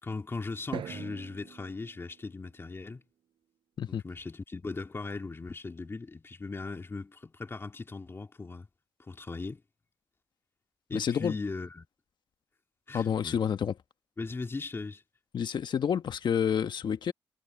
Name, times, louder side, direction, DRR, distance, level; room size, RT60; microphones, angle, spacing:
voice 1, 0.0-3.0 3.9-8.7 9.0-9.6 10.9-11.9 12.9-13.4 14.2-15.0, left 3 dB, 30° left, 2.6 m, -38 dB
Drum, 0.7-3.0, right 10 dB, 85° right, 7.5 m, -43 dB
voice 2, 10.9-11.3 12.9-13.7 15.3-17.1, left 8 dB, 65° left, 1.3 m, -29 dB
cardioid pair, 95°, 8 cm